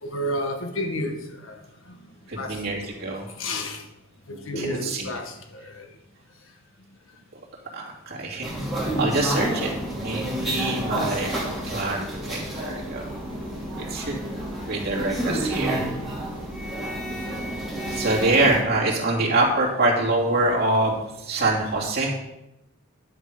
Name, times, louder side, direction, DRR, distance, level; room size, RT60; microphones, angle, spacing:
voice 1, 0.0-1.6 2.4-2.6 3.4-3.8 4.3-5.9 11.2-11.4, left 1 dB, 80° left, 5 dB, 1.5 m, -31 dB
voice 2, 2.3-3.2 4.6-5.1 7.7-8.5 9.0-11.3 11.7-13.1 13.8-14.1 14.7-15.8 18.0-21.0 21.3-22.2, right 2 dB, 50° right, -3 dB, 2.6 m, -25 dB
sound 1, 8.4-18.6, right 1 dB, ahead, 2.9 m, -30 dB
10.5 x 6.8 x 4.9 m, 0.91 s
head